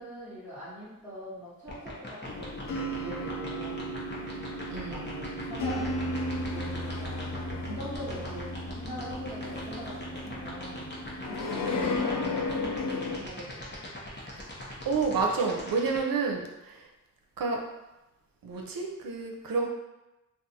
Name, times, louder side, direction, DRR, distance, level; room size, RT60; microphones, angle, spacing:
voice 1, 0.0-3.9 4.9-13.9, equal, 5° right, -14 dB, 1.2 m, -42 dB
sound 1, 1.7-16.0, left 1 dB, 30° left, 0.8 m, -41 dB
sound 2, 2.3-13.2, left 1 dB, 75° left, 0.5 m, -34 dB
voice 2, 4.7-5.1 11.8-12.0 14.8-16.7 17.4-17.6 18.4-19.7, right 4 dB, 85° right, 1 dB, 0.6 m, -29 dB
2.5 x 2.4 x 4.1 m, 0.98 s
wide cardioid pair, 80°, 33 cm